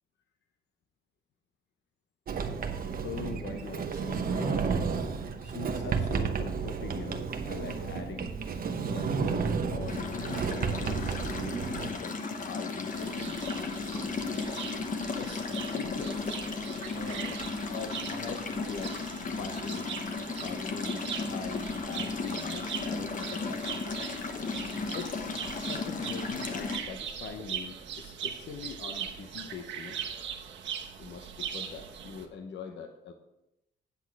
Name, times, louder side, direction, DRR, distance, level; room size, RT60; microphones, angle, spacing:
Sliding door, 2.3-11.9, right 5 dB, 50° right, 0.9 m, -32 dB
voice 1, 3.0-4.7 5.0-5.1 5.4-8.3 8.8-13.4 15.2-15.5 15.7-16.2 16.9-17.4 17.7-19.9 20.4-23.6 24.9-30.0 31.0-33.1, left 5 dB, 75° left, 6 dB, 0.9 m, -42 dB
sound 1, 9.9-26.8, left 4 dB, 45° left, 1.1 m, -35 dB
sound 2, 12.9-32.2, right 8 dB, 85° right, 1.0 m, -41 dB
8.3 x 8.1 x 4.7 m, 0.89 s
cardioid pair, 115°, 19 cm